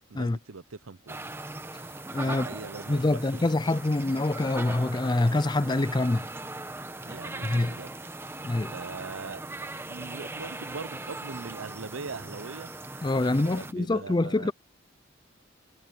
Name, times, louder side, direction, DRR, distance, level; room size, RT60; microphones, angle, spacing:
voice 1, 0.1-1.2 2.2-3.5 7.0-7.9 8.7-9.6 9.9-12.7 13.4-14.5, right 4 dB, 90° right, 0.7 m, -41 dB
sound 1, 1.1-13.7, right 2 dB, 10° right, 1.0 m, -39 dB
voice 2, 2.1-2.5 2.9-6.3 7.4-7.8 8.4-8.7 13.0-14.5, left 2 dB, 20° left, 0.4 m, -25 dB
head